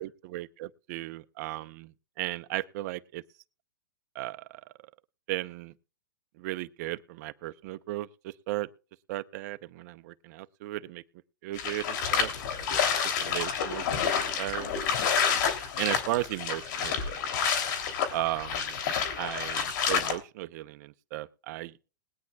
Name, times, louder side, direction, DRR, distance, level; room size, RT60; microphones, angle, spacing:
voice 1, 0.0-1.9 2.2-3.2 4.1-4.6 5.3-5.7 6.4-8.7 9.1-11.0 11.4-12.3 13.2-14.8 15.8-17.3 18.1-18.8 19.2-21.8, right 17 dB, 50° right, 0.7 m, -35 dB
sound 1, 11.6-20.2, left 7 dB, 60° left, 3.1 m, -29 dB
21.0 x 9.6 x 2.3 m
hypercardioid pair, 135°, 11 cm